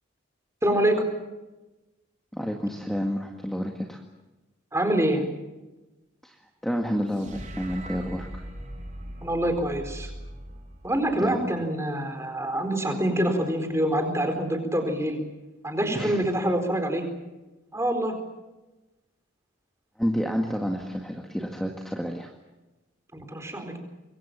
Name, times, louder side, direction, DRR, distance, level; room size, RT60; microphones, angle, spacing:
voice 1, 0.6-1.0 4.7-5.2 9.2-10.1 10.8-15.2 15.6-17.0 17.7-18.1 23.1-23.8, right 1 dB, 15° right, 5 dB, 4.3 m, -25 dB
voice 2, 2.3-4.0 6.2-6.4 6.6-8.4 11.2-11.4 15.9-16.2 20.0-22.3, equal, ahead, 1 dB, 1.9 m, -29 dB
sound 1, 7.1-11.5, right 1 dB, 35° right, 4.6 m, -40 dB
26.0 x 23.0 x 7.4 m, 1.1 s
head